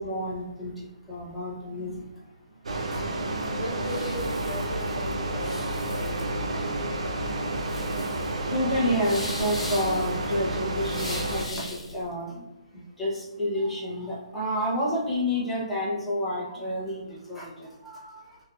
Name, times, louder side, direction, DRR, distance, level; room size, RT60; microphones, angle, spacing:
voice 1, 0.0-2.1 2.9-3.1 3.4-3.5 7.7-12.5 12.7-18.4, equal, ahead, -10 dB, 0.5 m, -30 dB
sound 1, 2.6-11.4, right 2 dB, 75° right, 0.5 m, -30 dB
sound 2, 3.4-12.0, left 1 dB, 80° left, 0.9 m, -40 dB
voice 2, 3.5-7.4, left 1 dB, 45° left, -1 dB, 0.6 m, -38 dB
2.9 x 2.3 x 2.2 m, 0.96 s
hypercardioid pair, 160°, 3 cm